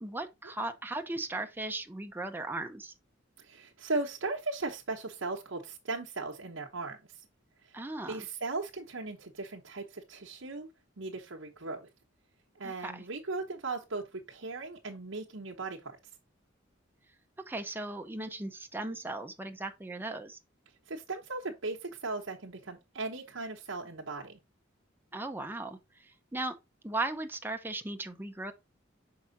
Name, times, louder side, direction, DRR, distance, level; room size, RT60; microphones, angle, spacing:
voice 1, 0.0-2.9 7.7-8.2 12.6-13.0 17.5-20.4 25.1-26.5 26.8-28.5, right 2 dB, 10° right, 0.7 m, -37 dB
voice 2, 3.4-7.3 7.6-7.8 8.1-10.7 11.0-11.9 12.5-16.0 20.9-24.4, right 3 dB, 85° right, 1.0 m, -37 dB
6.1 x 4.8 x 4.0 m
head